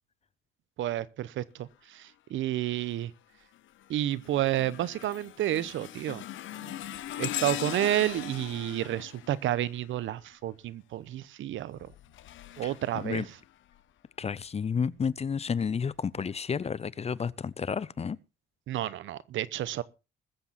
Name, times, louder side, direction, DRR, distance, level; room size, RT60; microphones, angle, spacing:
voice 1, 0.8-3.1 3.9-6.2 6.6-6.8 7.2-11.9 12.6-13.2 18.7-19.8, right 13 dB, 75° right, 0.9 m, -30 dB
sound 1, 2.6-3.0 3.5-10.3 11.6-13.8 14.4-14.6 15.5-15.6, left 12 dB, 75° left, 0.9 m, -40 dB
voice 2, 12.6-13.3 14.2-18.2, left 6 dB, 30° left, 0.6 m, -31 dB
21.0 x 7.4 x 4.1 m
cardioid pair, 90°, 20 cm